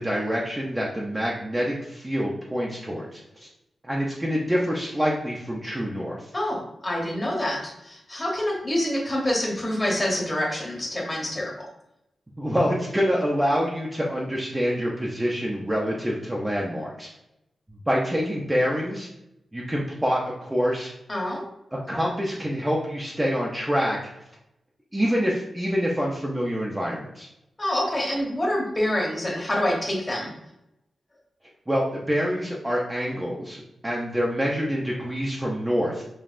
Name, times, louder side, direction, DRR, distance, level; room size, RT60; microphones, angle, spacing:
voice 1, 0.0-3.5 3.8-6.3 12.4-17.1 17.7-19.1 19.5-20.9 21.7-24.0 24.9-27.3 31.7-36.0, equal, 10° right, -3 dB, 0.5 m, -26 dB
voice 2, 6.3-11.5 21.1-21.5 27.6-30.3, left 1 dB, 20° left, -1 dB, 0.9 m, -26 dB
5.3 x 2.8 x 2.5 m, 0.84 s
wide cardioid pair, 165°, 0 cm